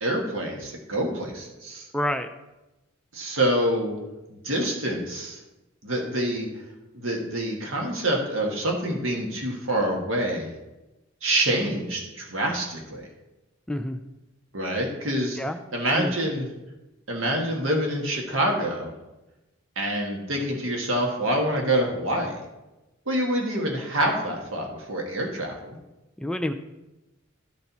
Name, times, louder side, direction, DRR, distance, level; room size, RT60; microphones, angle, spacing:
voice 1, 0.0-1.9 3.1-4.0 4.3-5.4 5.8-6.6 6.9-10.5 11.2-13.1 14.5-15.4 15.7-16.5 17.1-18.9 19.7-22.4 23.0-25.8, right 1 dB, 70° right, 1 dB, 1.6 m, -26 dB
voice 2, 1.9-2.3 13.7-14.0 15.4-15.6 15.9-16.1 26.2-26.5, left 1 dB, 5° left, 7 dB, 0.3 m, -28 dB
13.0 x 4.3 x 4.1 m, 1.0 s
head